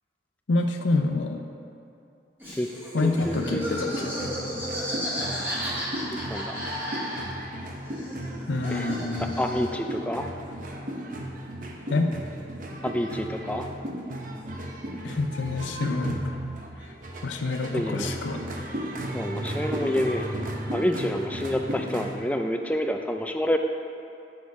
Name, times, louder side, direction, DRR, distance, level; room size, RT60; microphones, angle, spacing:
voice 1, 0.5-1.4 2.9-4.6 8.5-9.3 11.9-12.1 15.0-16.3 17.2-18.4, left 3 dB, 90° left, 4 dB, 0.6 m, -27 dB
Laughter, 2.4-7.6 7.8-9.8, equal, 10° right, 1.8 m, -34 dB
voice 2, 3.0-3.6 6.1-6.6 8.7-8.9 9.4-10.3 12.8-13.7 17.7-18.1 19.1-20.3 20.7-23.6, left 1 dB, 10° left, 4 dB, 0.4 m, -28 dB
sound 1, 3.0-22.2, right 1 dB, 45° right, 0.7 m, -35 dB
8.4 x 6.5 x 4.7 m, 2.6 s
head